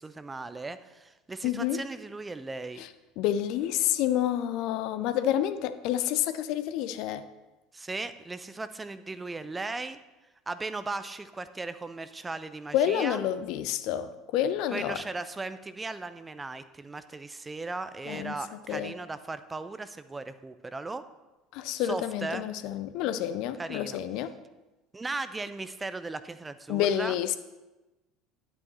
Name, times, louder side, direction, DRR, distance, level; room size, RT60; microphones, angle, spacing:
voice 1, 0.0-2.8 7.7-10.0 10.5-13.2 14.7-21.0 21.8-22.5 23.6-24.0 24.9-27.2, right 3 dB, 15° right, 0.5 m, -37 dB
voice 2, 1.4-1.8 2.8-2.9 3.2-7.2 12.7-15.0 18.1-18.9 21.5-24.3 26.7-27.4, left 11 dB, 55° left, 0.5 m, -29 dB
10.5 x 8.7 x 3.1 m
figure-of-eight pair, 65°, 0 cm